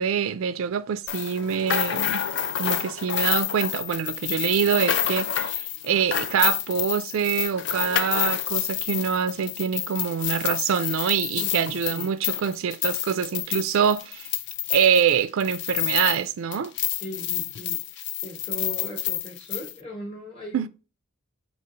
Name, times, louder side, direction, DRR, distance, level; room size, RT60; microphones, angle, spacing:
voice 1, 0.0-2.2 2.6-14.3 14.7-16.7 20.5-20.7, right 7 dB, 75° right, 0.4 m, -25 dB
sound 1, 1.1-16.3 16.5-19.7, left 11 dB, 55° left, 0.4 m, -28 dB
voice 2, 11.3-12.2 17.0-20.7, equal, 25° left, 0.9 m, -39 dB
4.6 x 2.8 x 2.9 m
head